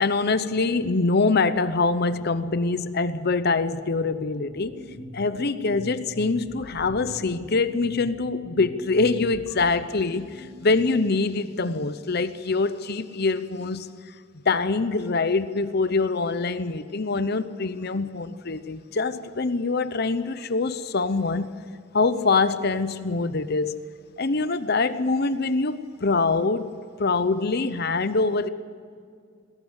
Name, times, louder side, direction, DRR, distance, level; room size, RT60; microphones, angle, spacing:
voice 1, 0.0-4.8 5.1-13.9 14.4-21.5 21.9-23.7 24.2-26.7 27.0-28.5, left 3 dB, 50° left, 0.8 m, -24 dB
sound 1, 3.9-11.0, left 1 dB, 65° right, 3.9 m, -42 dB
21.0 x 17.0 x 8.1 m
head